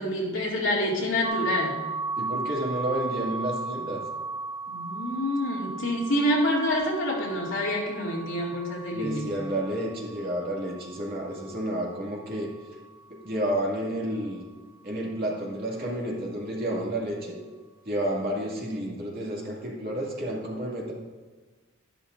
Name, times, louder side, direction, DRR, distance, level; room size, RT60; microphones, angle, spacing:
voice 1, 0.0-1.8 4.7-9.3, left 1 dB, 70° left, -4 dB, 2.4 m, -27 dB
sound 1, 1.2-13.0, right 3 dB, 25° right, 1.4 m, -36 dB
voice 2, 2.2-4.0 8.9-12.5 13.1-14.4 14.8-17.4 17.8-20.9, right 1 dB, 50° right, -3 dB, 2.3 m, -30 dB
11.5 x 11.5 x 2.6 m, 1.3 s
head